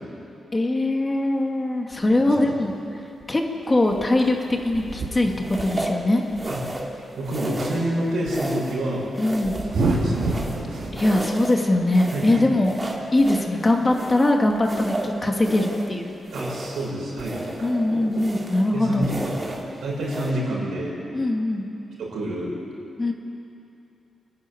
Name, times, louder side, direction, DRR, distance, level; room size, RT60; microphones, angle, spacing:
voice 1, 0.5-2.7 3.3-6.2 9.2-9.6 10.9-12.7 13.1-16.2 17.6-19.1 21.1-21.7 23.0-23.1, left 1 dB, 25° left, 2 dB, 2.2 m, -21 dB
sound 1, 1.9-2.9 3.2-7.4 7.7-8.0 9.0-11.1 11.5-12.1 13.1-13.2 13.6-13.7 14.1-14.2 14.5-15.8 17.0-17.1 17.3-18.5 19.0-19.5, right 2 dB, 65° right, 3.5 m, -31 dB
sound 2, 4.2-4.5 5.4-6.0 6.4-7.0 7.2-7.9 8.3-8.8 9.1-10.7 10.9-11.6 11.9-13.5 13.9-15.9 16.2-16.9 17.2-17.7 18.1-18.7 19.0-19.6 20.0-20.3, right 1 dB, 25° right, 3.1 m, -33 dB
voice 2, 7.2-9.1 9.8-11.0 12.1-12.4 16.3-17.4 18.7-20.9 22.0-22.5, right 1 dB, 85° right, -4 dB, 7.1 m, -28 dB
27.5 x 12.0 x 9.8 m, 2.8 s
cardioid pair, 95°, 0 cm